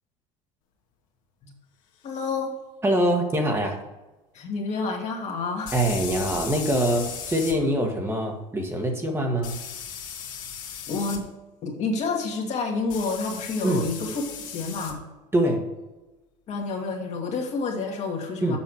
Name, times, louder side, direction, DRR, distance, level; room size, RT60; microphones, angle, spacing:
voice 1, 2.0-2.5 4.3-5.7 10.9-11.3 11.6-15.0 16.5-18.6, left 4 dB, 45° left, 1 dB, 2.0 m, -29 dB
sound 1, 2.2-2.3 5.7-7.6 9.4-11.2 12.9-14.9, left 7 dB, 65° left, 1.8 m, -36 dB
voice 2, 2.8-3.8 5.7-9.6 13.6-13.8 15.3-15.7 18.4-18.6, right 1 dB, 15° right, 2 dB, 1.6 m, -24 dB
7.2 x 5.6 x 6.4 m, 1.1 s
supercardioid pair, 100°, 15 cm